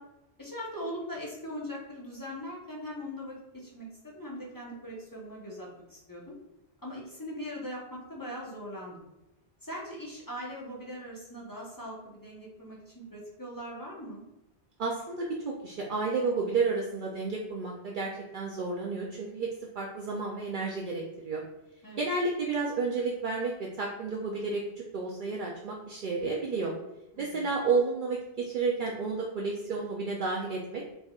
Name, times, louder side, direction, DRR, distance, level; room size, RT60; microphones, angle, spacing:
voice 1, 0.4-6.4 6.8-9.1 9.6-14.2 21.8-22.0 27.1-27.5, equal, 20° left, -5 dB, 0.9 m, -41 dB
voice 2, 14.8-19.5 19.8-21.4 22.0-26.7 27.2-30.8, right 4 dB, 60° right, -2 dB, 0.6 m, -31 dB
4.0 x 3.3 x 2.4 m, 0.91 s
omnidirectional pair, 1.1 m